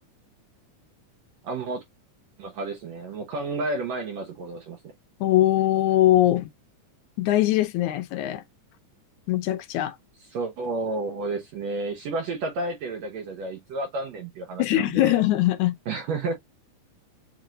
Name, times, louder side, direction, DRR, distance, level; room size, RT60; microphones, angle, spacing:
voice 1, 1.4-1.8 2.4-4.8 10.3-15.2 15.9-16.3, right 2 dB, 65° right, 2.1 m, -31 dB
voice 2, 5.2-6.5 7.2-8.4 9.3-10.0 14.6-15.8, left 14 dB, 80° left, 2.0 m, -21 dB
7.6 x 2.7 x 2.4 m
omnidirectional pair, 3.6 m